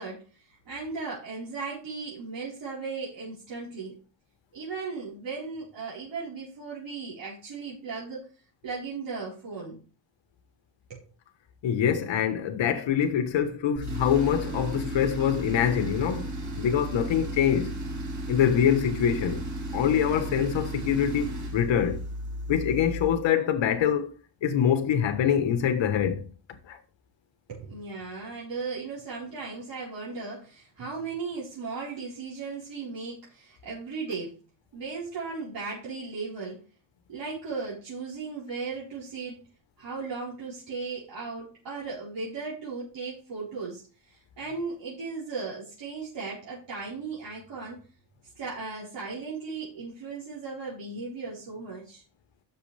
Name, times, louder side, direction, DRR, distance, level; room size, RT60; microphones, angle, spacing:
voice 1, 0.0-4.0 4.5-8.3 8.6-9.8 10.9-11.0 27.5-34.4 34.7-36.6 37.1-39.4 39.8-47.9 48.4-52.0, right 4 dB, 70° right, 4.5 m, -36 dB
voice 2, 11.6-16.3 16.6-17.7 18.3-19.4 19.7-21.3 21.5-22.0 22.5-24.1 24.4-26.2 26.7-26.8, left 8 dB, 80° left, 1.3 m, -24 dB
Tools, 13.7-23.2, right 1 dB, 40° right, 4.6 m, -34 dB
12.0 x 6.7 x 3.4 m
wide cardioid pair, 155°, 44 cm